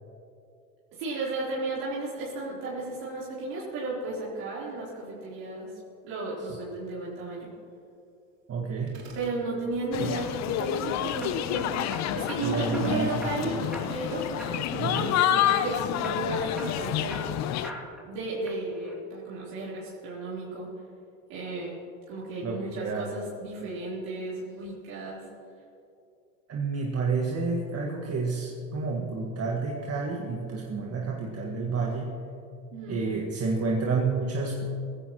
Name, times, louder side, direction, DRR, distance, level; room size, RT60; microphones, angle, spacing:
voice 1, 0.9-5.7 6.0-7.5 9.1-11.9 12.1-17.5 18.0-20.7 21.3-21.8 22.1-25.2 32.7-33.1, right 2 dB, 65° right, -7 dB, 3.8 m, -34 dB
voice 2, 8.5-9.1 10.0-10.1 12.4-13.8 14.8-15.0 22.4-23.2 26.5-32.2 32.9-34.6, right 4 dB, 40° right, -1 dB, 1.7 m, -30 dB
sound 1, 8.9-9.4, right 4 dB, 80° right, 2.8 m, -47 dB
sound 2, 9.9-17.7, left 11 dB, 45° left, 0.7 m, -29 dB
sound 3, 10.3-10.7 11.2-12.4 12.7-13.4 13.7-14.1 14.4-15.2 15.5-15.7 16.0-18.1 18.5-19.0, equal, ahead, 2.5 m, -42 dB
17.5 x 15.5 x 3.0 m, 2.5 s
hypercardioid pair, 80°, 39 cm